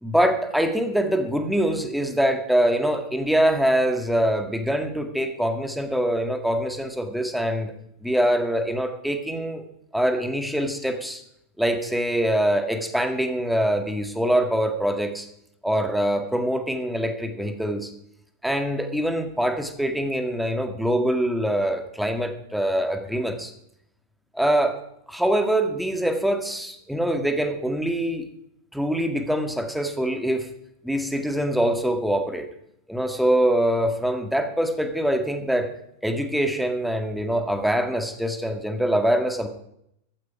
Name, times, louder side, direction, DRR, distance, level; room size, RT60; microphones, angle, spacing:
voice 1, 0.0-7.7 8.0-9.6 9.9-11.2 11.6-15.3 15.6-17.9 18.4-23.5 24.3-24.8 25.1-28.3 28.7-30.5 30.8-32.5 32.9-35.7 36.0-39.5, right 1 dB, ahead, 6 dB, 1.9 m, -24 dB
14.5 x 13.5 x 5.0 m, 0.74 s
figure-of-eight pair, 90°, 0 cm